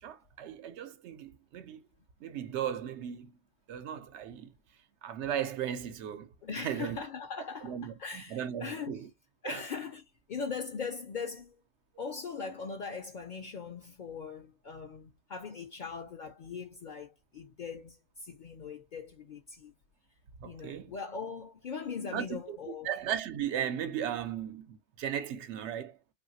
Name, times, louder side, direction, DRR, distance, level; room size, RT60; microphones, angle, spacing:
voice 1, 0.0-1.8 2.2-3.4 3.7-4.5 5.0-6.3 6.6-7.0 7.6-9.1 9.4-9.6 20.4-20.9 22.1-22.6 22.8-26.0, right 9 dB, 75° right, 0.9 m, -36 dB
voice 2, 6.4-9.0 9.4-11.6 12.0-19.7 20.4-22.9, left 5 dB, 60° left, 0.5 m, -40 dB
3.1 x 2.4 x 2.6 m
omnidirectional pair, 1.2 m